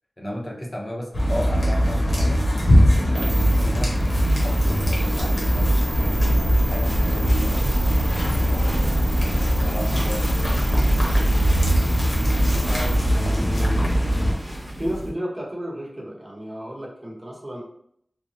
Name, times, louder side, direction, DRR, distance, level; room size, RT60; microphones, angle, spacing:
voice 1, 0.2-5.7 6.0-8.4 9.6-10.5, equal, 30° left, -2 dB, 0.7 m, -35 dB
sound 1, 1.1-14.3, equal, 80° left, 0.9 m, -21 dB
sound 2, 3.1-13.0, right 1 dB, 65° right, 0.4 m, -30 dB
sound 3, 4.1-15.1, equal, 10° left, 0.9 m, -34 dB
voice 2, 12.5-13.9 14.8-17.6, equal, 40° right, -3 dB, 0.9 m, -32 dB
3.4 x 2.1 x 2.6 m, 0.68 s
wide cardioid pair, 45°, 0 cm